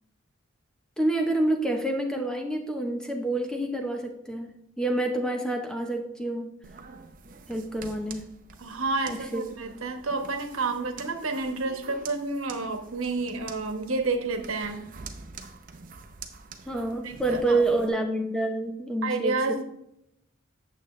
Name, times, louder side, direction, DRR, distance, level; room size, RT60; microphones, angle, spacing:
voice 1, 1.0-6.5 7.5-8.3 9.1-9.5 16.7-19.6, right 2 dB, 5° left, 3 dB, 0.8 m, -28 dB
sound 1, 6.6-17.9, right 5 dB, 40° right, 0.7 m, -46 dB
voice 2, 8.6-14.8 17.0-17.6 19.0-19.6, right 3 dB, 90° right, 5 dB, 1.1 m, -30 dB
8.8 x 7.3 x 3.2 m, 0.78 s
head